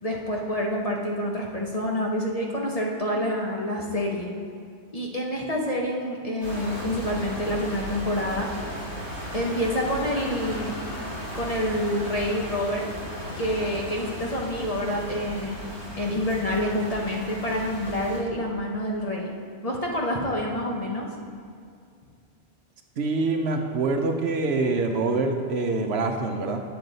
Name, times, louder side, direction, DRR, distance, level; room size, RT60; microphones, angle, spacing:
voice 1, 0.0-4.3 4.9-8.5 9.3-10.8 11.3-12.9 13.4-15.6 16.0-19.3 19.6-21.1, left 1 dB, 35° left, -1 dB, 0.9 m, -27 dB
sound 1, 6.4-18.2, equal, 70° left, 2.4 m, -36 dB
voice 2, 23.0-26.6, right 3 dB, 65° right, 4 dB, 0.9 m, -25 dB
9.2 x 6.9 x 3.9 m, 2.3 s
omnidirectional pair, 1.2 m